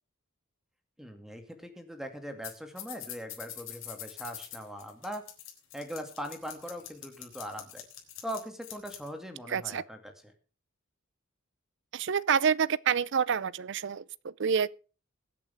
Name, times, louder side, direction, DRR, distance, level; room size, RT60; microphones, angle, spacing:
voice 1, 1.0-5.2 5.7-7.8 8.2-10.3, equal, ahead, 2.3 m, -41 dB
sound 1, 2.4-2.5 2.8-9.1, left 12 dB, 65° left, 3.9 m, -44 dB
voice 2, 9.5-9.8 11.9-14.7, right 7 dB, 60° right, 0.5 m, -28 dB
21.5 x 8.6 x 3.5 m
head